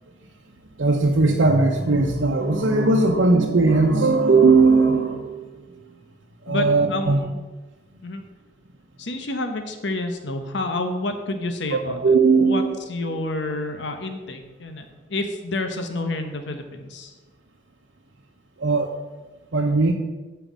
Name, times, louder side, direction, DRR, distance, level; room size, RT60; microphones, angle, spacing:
voice 1, 0.8-5.5 6.5-7.2 11.7-12.8 18.6-18.9 19.5-19.9, right 3 dB, 85° right, -1 dB, 0.8 m, -18 dB
voice 2, 6.5-7.4 8.0-8.2 9.0-12.0 12.4-12.6 12.9-17.1, left 2 dB, 70° left, 6 dB, 0.9 m, -29 dB
9.0 x 4.6 x 7.3 m, 1.2 s
head